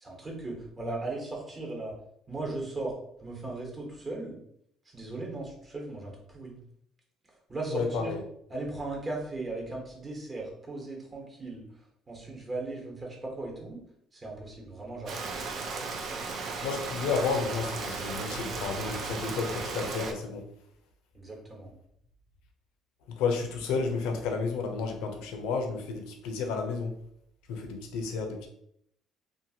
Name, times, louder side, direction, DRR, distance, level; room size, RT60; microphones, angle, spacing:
voice 1, 0.0-2.0 2.3-4.4 4.9-6.6 7.5-8.1 8.5-11.6 12.1-13.8 14.1-15.4 21.1-21.7, right 2 dB, 30° right, -1 dB, 1.1 m, -37 dB
voice 2, 7.7-8.2 16.6-20.5 23.1-26.9 27.5-28.5, left 5 dB, 80° left, 4 dB, 0.6 m, -31 dB
Rain, 15.1-20.1, right 4 dB, 55° right, 0.5 m, -35 dB
2.8 x 2.4 x 2.8 m, 0.71 s
supercardioid pair, 90°, 0 cm